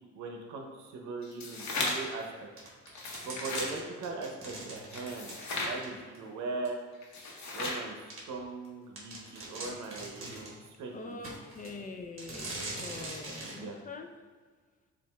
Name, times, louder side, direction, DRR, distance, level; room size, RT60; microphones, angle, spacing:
voice 1, 0.1-2.2 3.2-5.4 5.6-6.8 7.5-10.5 10.8-11.2 13.5-13.8, right 3 dB, 80° right, 2 dB, 0.8 m, -40 dB
sound 1, 1.2-2.2 2.9-3.7 4.9-5.8 7.0-7.9, left 2 dB, 65° left, 1.0 m, -35 dB
sound 2, 2.6-6.2 6.6-6.7 7.5-7.6 8.1-8.2 8.6-8.7 9.0-10.6 11.2-11.8 12.2-13.6, right 2 dB, 45° right, 1.3 m, -43 dB
voice 2, 10.9-14.1, left 3 dB, 25° left, 4 dB, 0.5 m, -44 dB
6.9 x 2.6 x 2.3 m, 1.5 s
cardioid pair, 90°, 30 cm